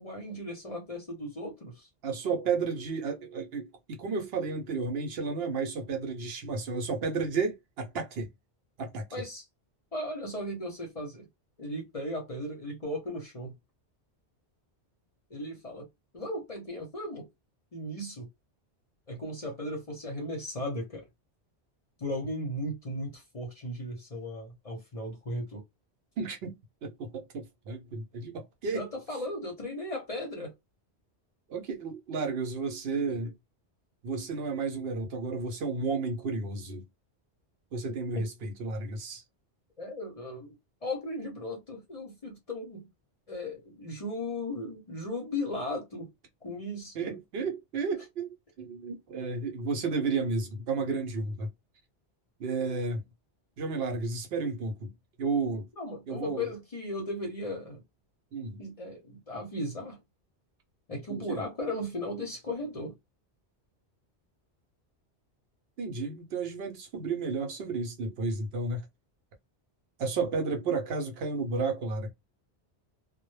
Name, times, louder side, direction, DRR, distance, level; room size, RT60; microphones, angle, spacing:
voice 1, 0.0-1.9 9.1-9.4 9.9-11.3 11.6-13.5 15.3-15.9 16.1-17.3 17.7-18.3 19.1-21.0 22.0-25.6 28.7-30.5 38.2-38.3 39.8-40.6 40.8-42.9 43.3-46.1 46.4-47.2 55.8-57.8 58.6-60.0 60.9-63.0, left 1 dB, 40° left, 0.7 m, -36 dB
voice 2, 2.0-8.3 8.8-9.2 26.2-28.9 31.5-33.3 34.0-36.8 37.7-39.2 46.9-51.5 52.4-53.0 53.6-55.7 56.1-56.5 58.3-58.6 61.1-61.4 65.8-68.8 70.0-72.1, right 4 dB, 65° right, 0.8 m, -32 dB
2.1 x 2.0 x 3.0 m
omnidirectional pair, 1.1 m